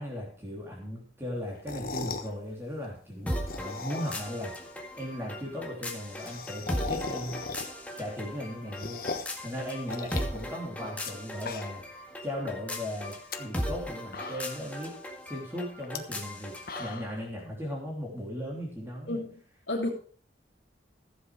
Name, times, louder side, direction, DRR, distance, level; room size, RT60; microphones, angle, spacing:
voice 1, 0.0-4.6 5.0-7.4 8.0-11.9 12.2-15.0 15.2-19.2, equal, 15° right, 3.3 m, -37 dB
sound 1, 1.5-2.3 3.3-4.4 4.7-4.8 5.1-5.2 5.4-5.5 5.7-7.9 8.3-9.4 9.9-11.1 11.4-12.0 12.3-12.4 13.1-13.4 13.8-13.9 14.1-14.7 15.8-16.0 16.4-17.2, left 4 dB, 55° left, 1.2 m, -38 dB
sound 2, 3.3-17.0, equal, 10° left, 1.8 m, -38 dB
voice 2, 19.1-19.3 19.7-19.9, left 2 dB, 90° left, 2.6 m, -30 dB
15.0 x 7.8 x 4.7 m
head